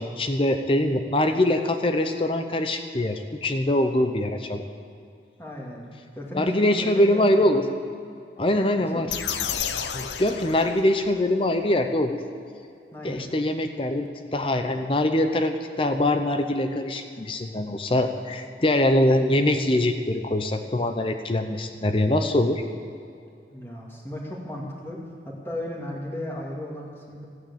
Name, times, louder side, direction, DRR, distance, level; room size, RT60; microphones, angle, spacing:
voice 1, 0.0-4.6 6.3-7.6 8.4-9.1 9.9-12.2 13.0-22.6, left 1 dB, 30° left, 7 dB, 0.7 m, -23 dB
voice 2, 5.4-5.9 6.2-7.6 8.9-9.0 12.9-13.3 23.5-25.0 25.2-27.3, left 1 dB, 15° left, -3 dB, 2.3 m, -35 dB
sound 1, 9.1-11.2, left 8 dB, 85° left, 0.8 m, -31 dB
14.5 x 9.5 x 8.6 m, 2.5 s
head